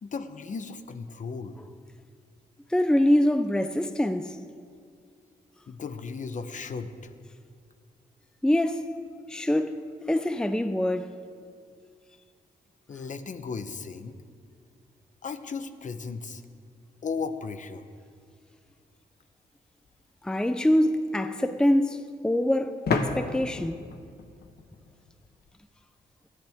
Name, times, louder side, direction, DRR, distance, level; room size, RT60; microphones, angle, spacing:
voice 1, 0.0-1.6 5.7-7.1 12.9-14.2 15.2-16.4 17.0-17.9, left 5 dB, 50° left, 0.9 m, -36 dB
voice 2, 2.7-4.4 8.4-8.9 9.3-9.8 10.1-11.1 20.2-23.8, left 1 dB, 5° left, 0.6 m, -24 dB
sound 1, 19.9-20.0 22.9-25.5, left 4 dB, 70° left, 1.2 m, -32 dB
19.0 x 13.5 x 3.6 m
cardioid pair, 85°, 17 cm